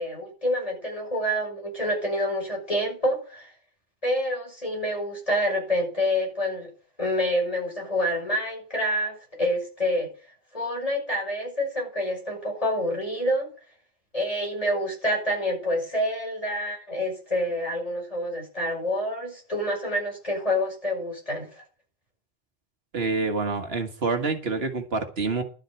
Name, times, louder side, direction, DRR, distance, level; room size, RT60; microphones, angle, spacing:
voice 1, 0.0-3.5 4.0-6.7 7.0-10.1 10.5-13.5 14.1-21.5, equal, 35° left, 0 dB, 6.2 m, -27 dB
voice 2, 22.9-25.4, right 3 dB, 80° right, 6 dB, 1.9 m, -27 dB
12.0 x 6.4 x 8.2 m, 0.37 s
omnidirectional pair, 1.0 m